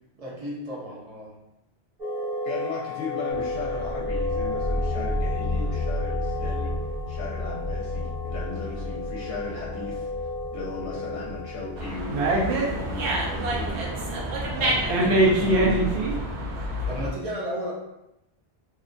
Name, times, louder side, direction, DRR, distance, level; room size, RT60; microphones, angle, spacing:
voice 1, 0.2-1.4 16.9-17.7, equal, 40° right, -4 dB, 0.7 m, -33 dB
sound 1, 2.0-11.9, left 2 dB, 65° right, 1.1 m, -33 dB
voice 2, 2.4-6.7 7.1-10.3 10.5-16.0, left 4 dB, 75° left, -5 dB, 0.8 m, -36 dB
sound 2, 3.3-14.7, left 2 dB, 50° left, 0.7 m, -33 dB
Dog, 11.8-17.1, right 1 dB, 80° right, 0.8 m, -24 dB
2.6 x 2.1 x 2.5 m, 0.88 s
omnidirectional pair, 1.1 m